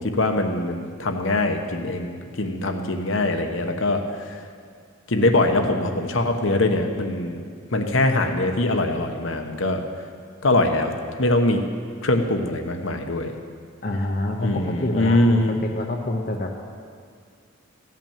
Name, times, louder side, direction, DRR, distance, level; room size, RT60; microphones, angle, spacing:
voice 1, 0.0-4.0 4.3-4.4 5.1-7.4 7.7-9.8 10.4-10.9 11.2-11.6 12.0-13.3 14.4-15.6, left 2 dB, 65° left, 5 dB, 1.0 m, -22 dB
voice 2, 13.8-16.5, left 1 dB, 45° left, 1 dB, 0.7 m, -27 dB
14.5 x 5.9 x 8.8 m, 2.1 s
head